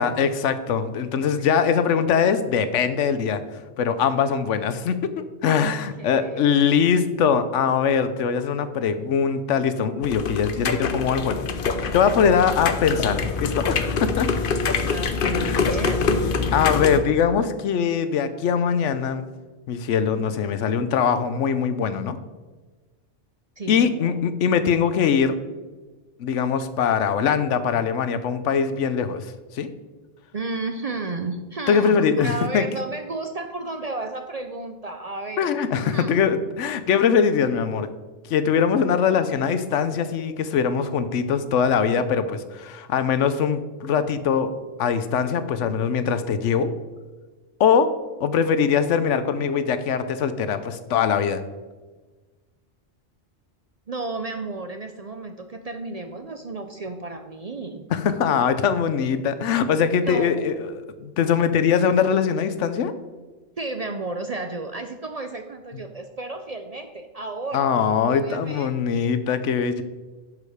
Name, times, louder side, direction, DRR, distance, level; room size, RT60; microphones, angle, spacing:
voice 1, 0.0-3.4 3.8-5.0 5.4-14.3 15.4-15.6 16.5-19.3 19.7-22.2 23.7-25.4 26.2-29.7 31.7-32.7 35.4-37.9 38.3-44.5 44.8-46.7 47.6-47.9 48.2-51.4 57.9-60.7 61.0-62.9 67.5-69.8, left 7 dB, 85° left, 11 dB, 1.0 m, -22 dB
voice 2, 5.6-6.5 14.1-14.4 14.9-16.0 23.6-24.2 30.3-36.2 53.9-57.9 60.0-60.5 63.6-67.7 68.1-68.8, right 3 dB, 45° right, 7 dB, 0.5 m, -33 dB
sound 1, 10.0-17.0, left 4 dB, 55° left, 0.8 m, -25 dB
11.0 x 5.0 x 4.9 m, 1.3 s
omnidirectional pair, 1.2 m